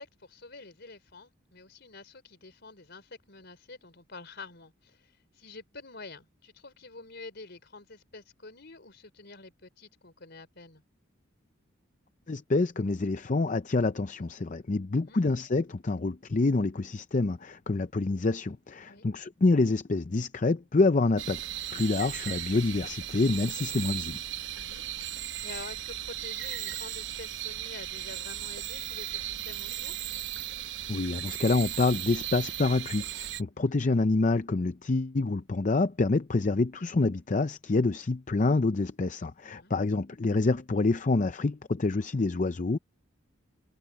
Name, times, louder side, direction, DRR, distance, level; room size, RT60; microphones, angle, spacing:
voice 1, 0.0-10.8 14.9-15.2 18.8-19.1 24.5-30.1 33.6-33.7 39.4-39.8, left 3 dB, 55° left, 4.6 m, -48 dB
voice 2, 12.3-21.4 21.7-24.2 30.9-42.8, left 3 dB, 40° left, 0.5 m, -27 dB
sound 1, 21.2-33.4, right 12 dB, 60° right, 0.9 m, -37 dB
head